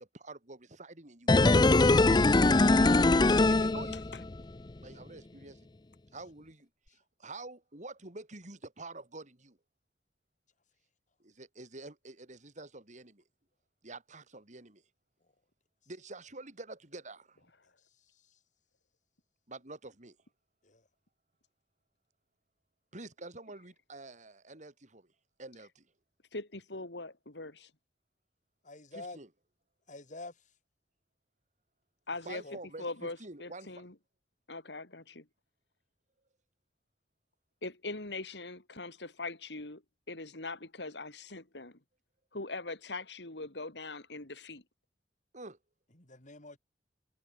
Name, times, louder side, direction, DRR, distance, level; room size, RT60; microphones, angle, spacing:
voice 1, 0.0-2.6 3.5-4.0 4.8-5.6 6.1-6.7 7.2-9.6 11.2-13.2 13.8-14.8 15.9-17.4 19.5-20.2 22.9-25.1 25.4-25.8 28.9-29.3 32.3-33.8 45.3-45.6, right 2 dB, 45° right, 3.8 m, -47 dB
sound 1, 1.3-4.4 4.7-4.8, left 2 dB, 25° left, 0.5 m, -22 dB
voice 2, 26.3-27.7 32.1-32.4 32.8-33.9 34.5-35.2 37.6-39.8 40.1-41.8 42.3-44.6, left 3 dB, 80° left, 3.5 m, -41 dB
voice 3, 28.6-29.2 29.9-30.3 32.4-32.6 45.9-46.6, left 2 dB, 45° left, 5.1 m, -46 dB
head